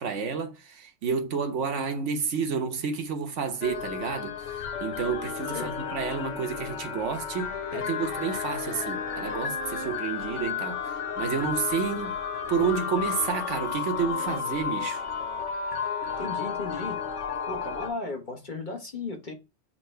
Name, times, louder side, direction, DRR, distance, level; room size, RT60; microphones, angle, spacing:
voice 1, 0.0-12.2 12.5-15.0, right 6 dB, 75° right, 1.3 m, -30 dB
sound 1, 3.6-17.9, left 7 dB, 75° left, 1.1 m, -33 dB
sound 2, 7.3-16.8, right 4 dB, 30° right, 0.5 m, -45 dB
voice 2, 16.2-17.0 17.5-19.3, left 3 dB, 40° left, 1.4 m, -35 dB
7.6 x 2.9 x 4.4 m
omnidirectional pair, 1.3 m